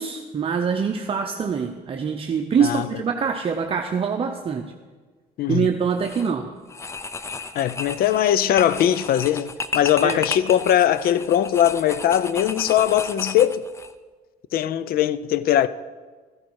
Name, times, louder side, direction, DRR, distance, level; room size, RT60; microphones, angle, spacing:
voice 1, 0.0-4.7 5.5-6.5 10.0-10.2, right 6 dB, 35° right, 0.7 m, -24 dB
voice 2, 5.4-5.7 7.5-13.6 14.5-15.7, left 11 dB, 60° left, 0.6 m, -20 dB
sound 1, 5.9-6.3 6.7-13.9, left 4 dB, 15° left, 0.5 m, -33 dB
13.5 x 11.0 x 4.8 m
cardioid pair, 110°, 17 cm